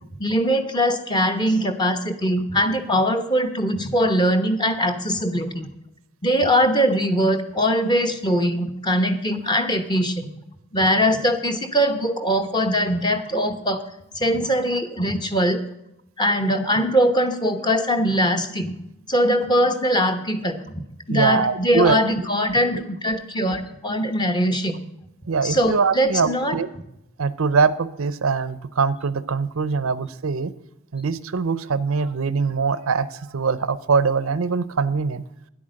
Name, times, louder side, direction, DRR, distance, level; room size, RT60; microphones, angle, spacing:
voice 1, 0.2-5.7 6.2-10.3 10.7-13.8 14.1-15.6 16.2-18.8 19.1-20.8 21.1-24.8 25.4-26.6, equal, 20° left, 7 dB, 1.0 m, -21 dB
voice 2, 21.1-22.3 25.3-26.7 27.2-30.5 30.9-35.2, right 5 dB, 75° right, 17 dB, 0.6 m, -22 dB
10.5 x 8.5 x 6.3 m, 0.85 s
head